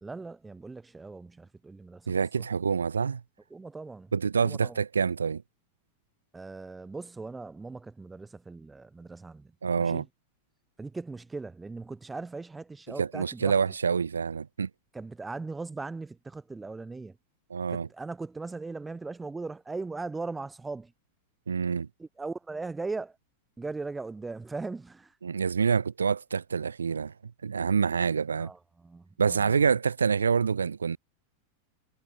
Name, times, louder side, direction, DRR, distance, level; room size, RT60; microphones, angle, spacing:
voice 1, 0.0-2.2 3.5-4.1 4.4-4.8 6.3-9.5 9.8-10.1 10.8-13.5 14.9-17.2 17.7-20.9 22.0-23.2 23.6-25.1 28.4-29.6, right 3 dB, 10° right, 0.6 m, -39 dB
voice 2, 2.1-3.2 4.1-5.4 9.6-10.0 12.9-14.7 17.5-17.9 21.5-21.9 25.2-28.5 29.2-31.0, right 6 dB, 70° right, 0.4 m, -27 dB
figure-of-eight pair, 90°, 0 cm